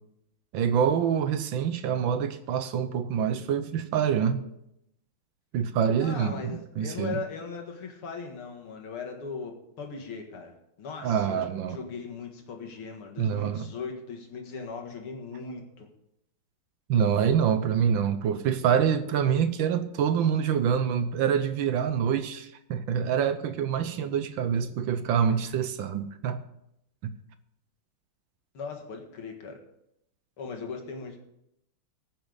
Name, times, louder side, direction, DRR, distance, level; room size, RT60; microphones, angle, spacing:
voice 1, 0.5-4.4 5.5-7.2 11.0-11.8 13.2-13.7 16.9-26.4 27.0-27.1, right 8 dB, 70° right, 11 dB, 1.4 m, -26 dB
voice 2, 6.0-15.9 28.5-29.6 30.4-31.2, left 4 dB, 80° left, 2 dB, 2.7 m, -39 dB
20.5 x 6.9 x 3.9 m, 0.80 s
omnidirectional pair, 2.4 m